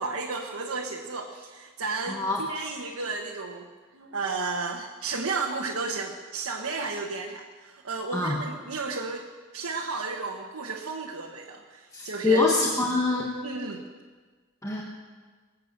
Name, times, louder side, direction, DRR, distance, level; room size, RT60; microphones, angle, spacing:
voice 1, 0.0-3.7 3.9-9.3 9.5-12.5 13.4-13.8, right 4 dB, 85° right, -1 dB, 1.4 m, -33 dB
voice 2, 2.0-2.4 8.1-8.4 11.9-13.3 14.6-14.8, left 3 dB, 15° left, -2 dB, 1.3 m, -25 dB
23.0 x 8.5 x 6.7 m, 1.5 s
head